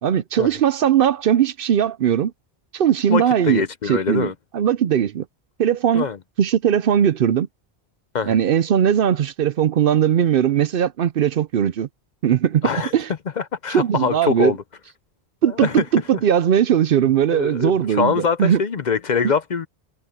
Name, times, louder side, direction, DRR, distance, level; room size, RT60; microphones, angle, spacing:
voice 1, 0.0-2.3 2.7-5.2 5.6-6.1 6.4-7.5 8.3-11.9 12.2-13.1 13.7-14.5 15.4-18.6, right 9 dB, 65° right, 0.7 m, -19 dB
voice 2, 3.1-4.3 5.9-6.2 8.1-8.4 12.6-12.9 13.4-14.6 15.5-15.8 17.3-19.7, left 6 dB, 50° left, 0.7 m, -23 dB
omnidirectional pair, 1.1 m